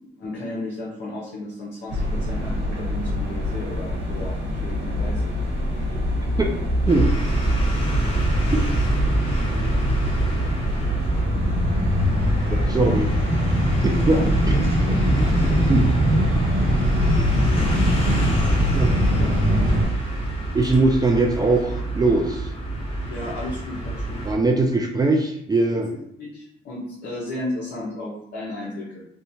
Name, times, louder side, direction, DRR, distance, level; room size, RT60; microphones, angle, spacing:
voice 1, 0.0-5.3 14.0-15.2 19.1-19.3 19.7-19.9 23.1-24.2 26.2-29.0, left 1 dB, 60° left, -4 dB, 0.7 m, -34 dB
sound 1, 1.9-19.9, equal, 85° right, 1.2 m, -23 dB
sound 2, 6.9-24.3, right 2 dB, 25° left, 1.0 m, -26 dB
voice 2, 12.5-13.1 13.8-14.2 15.7-15.9 18.7-19.0 20.5-22.5 24.3-25.9, right 2 dB, 20° right, 1 dB, 0.3 m, -21 dB
2.7 x 2.2 x 2.7 m, 0.72 s
cardioid pair, 90°, 20 cm